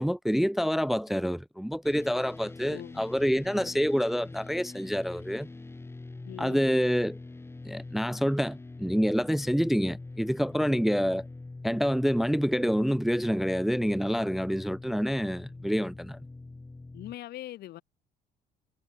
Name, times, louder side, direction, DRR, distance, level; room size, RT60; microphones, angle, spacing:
voice 1, 0.0-5.5 6.4-7.2 7.6-11.3 11.6-16.2, equal, ahead, 0.5 m, -27 dB
sound 1, 1.8-17.1, left 3 dB, 15° left, 2.1 m, -44 dB
voice 2, 2.6-3.1 3.5-3.8 6.2-6.8 16.9-17.8, left 14 dB, 70° left, 3.1 m, -43 dB
cardioid pair, 110°, 17 cm